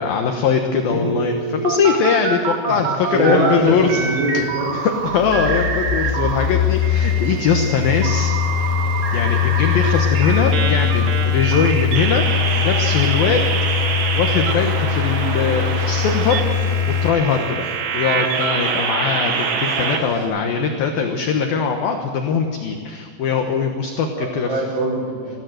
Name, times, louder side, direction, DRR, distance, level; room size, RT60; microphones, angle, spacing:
voice 1, 0.0-4.0 4.7-8.3 9.1-12.2 12.6-13.4 13.8-16.8 17.0-17.7 17.9-24.6, left 5 dB, 65° left, 4 dB, 2.6 m, -21 dB
sound 1, 0.9-3.6 3.9-6.5 6.8-20.0, right 6 dB, 65° right, 3.5 m, -25 dB
sound 2, 3.1-17.1, left 8 dB, 85° left, 3.5 m, -22 dB
voice 2, 3.1-4.7 24.1-25.3, right 2 dB, 85° right, -5 dB, 7.8 m, -23 dB
sound 3, 12.3-20.2, right 2 dB, 35° right, 5.3 m, -35 dB
22.5 x 16.0 x 7.8 m, 2.2 s
omnidirectional pair, 5.3 m